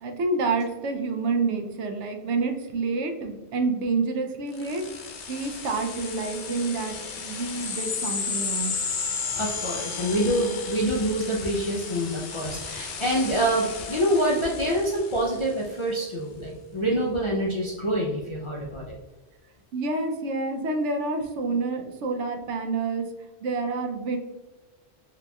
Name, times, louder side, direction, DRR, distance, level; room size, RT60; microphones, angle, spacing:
voice 1, 0.0-4.8 5.3-8.8 19.7-23.1 23.4-24.2, right 3 dB, 75° right, 4 dB, 0.9 m, -28 dB
sound 1, 4.5-15.6, left 5 dB, 75° left, 0.9 m, -34 dB
voice 2, 9.3-18.9, right 1 dB, 45° left, -4 dB, 0.4 m, -26 dB
4.0 x 2.8 x 2.2 m, 1.2 s
omnidirectional pair, 1.2 m